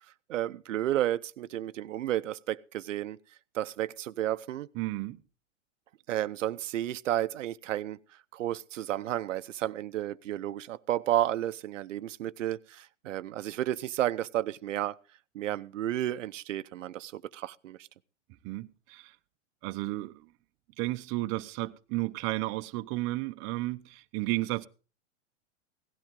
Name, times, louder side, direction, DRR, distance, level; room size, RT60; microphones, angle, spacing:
voice 1, 0.3-3.2 3.5-4.7 6.1-8.0 8.3-15.0 15.3-17.8, right 13 dB, 80° right, 0.8 m, -32 dB
voice 2, 4.7-5.2 18.4-19.2 19.6-20.3 20.8-24.7, right 19 dB, 35° right, 0.8 m, -33 dB
17.0 x 12.0 x 3.8 m
hypercardioid pair, 125°, 37 cm